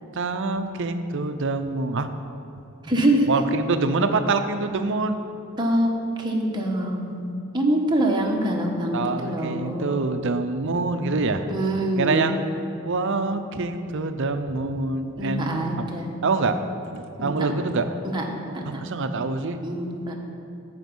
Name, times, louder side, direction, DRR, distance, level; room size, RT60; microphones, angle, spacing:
voice 1, 0.0-2.1 3.3-5.2 8.9-11.5 12.0-12.4 12.9-15.9 16.2-16.6 16.9-17.9 18.7-19.6, right 3 dB, 60° right, 9 dB, 0.6 m, -25 dB
voice 2, 2.8-3.3 5.6-5.9 6.2-10.0 11.5-12.3 15.2-16.2 17.2-17.3 18.0-18.8 19.6-20.1, right 1 dB, 20° right, -1 dB, 1.1 m, -25 dB
14.0 x 5.1 x 5.4 m, 2.7 s
head